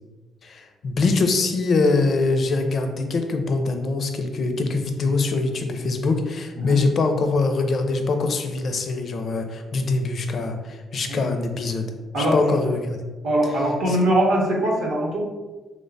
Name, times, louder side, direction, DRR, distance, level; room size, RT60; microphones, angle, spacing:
voice 1, 0.4-11.9 12.2-13.1 13.9-14.0, left 3 dB, 55° left, 6 dB, 0.4 m, -23 dB
voice 2, 13.2-15.3, right 1 dB, 85° right, -3 dB, 0.9 m, -21 dB
3.0 x 2.1 x 3.9 m, 1.3 s
cardioid pair, 90°, 0 cm